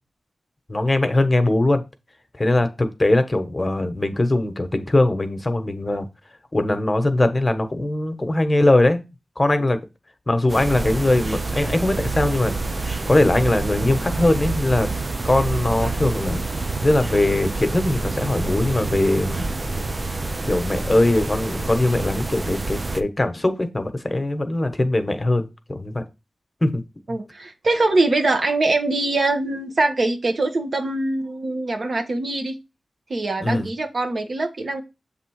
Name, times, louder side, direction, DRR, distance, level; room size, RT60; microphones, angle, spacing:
voice 1, 0.7-1.8 2.4-6.0 6.5-9.0 9.4-9.8 10.3-12.5 13.1-14.9 15.2-19.4 20.5-26.0 26.6-26.8 33.4-33.7, left 1 dB, 30° left, 1.1 m, -21 dB
sound 1, 10.5-23.0, right 3 dB, 40° right, 0.6 m, -27 dB
voice 2, 27.1-32.6 33.1-34.8, right 2 dB, 60° right, 1.2 m, -23 dB
7.1 x 3.5 x 4.7 m
cardioid pair, 45°, 0 cm